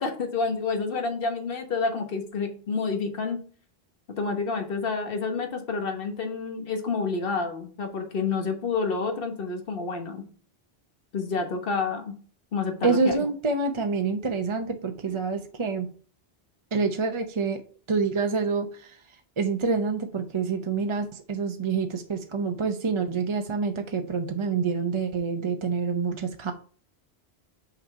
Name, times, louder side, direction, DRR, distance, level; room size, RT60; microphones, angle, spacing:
voice 1, 0.0-3.4 4.1-10.2 11.1-12.1 12.5-13.2, left 4 dB, 60° left, 5 dB, 1.4 m, -29 dB
voice 2, 12.8-15.9 16.7-17.6 17.9-19.0 19.4-26.5, right 4 dB, 35° right, 5 dB, 0.6 m, -27 dB
5.5 x 4.1 x 5.4 m, 0.42 s
omnidirectional pair, 1.1 m